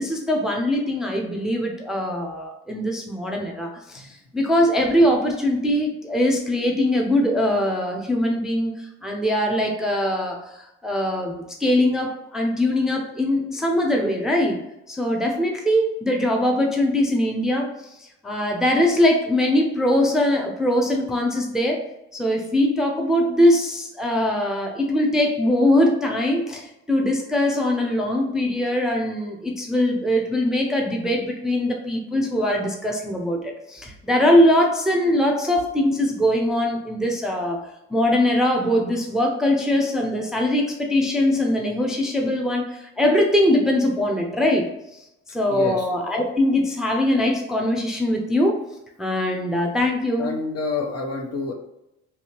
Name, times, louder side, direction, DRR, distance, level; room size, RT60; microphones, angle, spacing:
voice 1, 0.0-14.6 14.9-17.7 18.0-21.8 22.1-45.0 45.3-48.6 49.0-50.4, left 1 dB, ahead, 1 dB, 0.5 m, -22 dB
voice 2, 45.5-45.9 50.2-51.5, left 4 dB, 45° left, 1 dB, 0.7 m, -28 dB
2.8 x 2.7 x 2.9 m, 0.87 s
hypercardioid pair, 55°, 35 cm